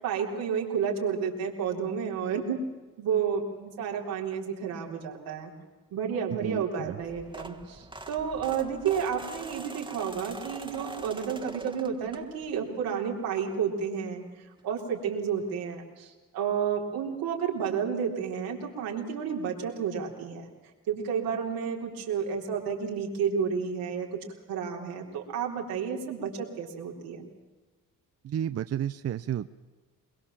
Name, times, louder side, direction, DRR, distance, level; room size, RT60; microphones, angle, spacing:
voice 1, 0.0-2.6 3.0-5.5 5.9-14.2 14.6-20.5 20.9-24.1 24.5-27.3, right 7 dB, 85° right, 0 dB, 3.9 m, -31 dB
voice 2, 6.4-7.0 28.2-29.5, right 10 dB, 45° right, 12 dB, 0.7 m, -32 dB
sound 1, 7.0-12.6 13.1-13.4 14.6-14.7 14.9-15.0 15.4-15.5, right 2 dB, 15° right, 1.5 m, -43 dB
22.5 x 22.0 x 7.4 m, 1.3 s
cardioid pair, 80°, 34 cm